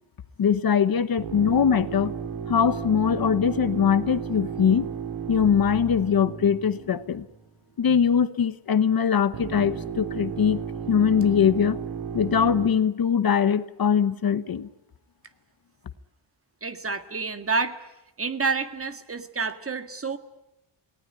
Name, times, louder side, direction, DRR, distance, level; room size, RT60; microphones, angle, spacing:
voice 1, 0.4-2.1 2.5-4.9 5.3-7.2 7.8-10.6 10.9-11.8 12.1-14.7, left 7 dB, 50° left, 13 dB, 1.0 m, -22 dB
sound 1, 1.2-7.5 9.3-12.7, right 7 dB, 85° right, 3.2 m, -34 dB
voice 2, 16.6-17.8 18.2-20.2, right 4 dB, 30° right, 9 dB, 1.9 m, -28 dB
28.5 x 19.0 x 9.9 m, 0.93 s
wide cardioid pair, 140°, 47 cm